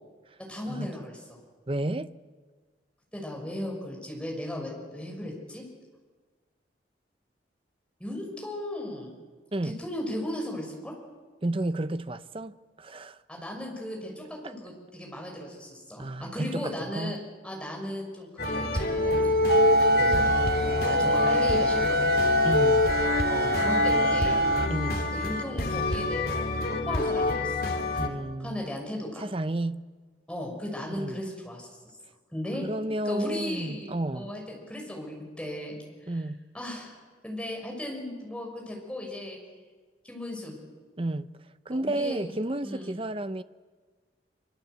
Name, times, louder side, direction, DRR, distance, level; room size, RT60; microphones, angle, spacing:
voice 1, 0.4-1.4 3.1-5.6 8.0-9.1 9.6-10.9 13.3-17.2 17.4-19.2 20.0-20.3 20.9-22.1 23.2-24.4 25.1-27.7 28.4-29.3 30.3-31.7 32.3-32.7 33.0-35.8 36.0-36.2 36.5-39.4 40.0-40.6 41.7-42.2 42.6-42.9, left 1 dB, 5° left, 6.5 m, -36 dB
voice 2, 1.7-2.1 9.5-9.8 11.4-13.2 14.4-14.5 16.0-17.1 22.4-22.9 24.7-25.0 28.0-28.7 29.2-29.9 30.9-31.2 32.6-34.3 36.1-36.4 41.0-41.3 41.7-43.4, right 1 dB, 30° right, 0.7 m, -32 dB
sound 1, 18.4-28.1, left 2 dB, 55° left, 3.2 m, -27 dB
sound 2, 19.5-24.7, equal, 55° right, 1.3 m, -24 dB
26.0 x 26.0 x 8.2 m
head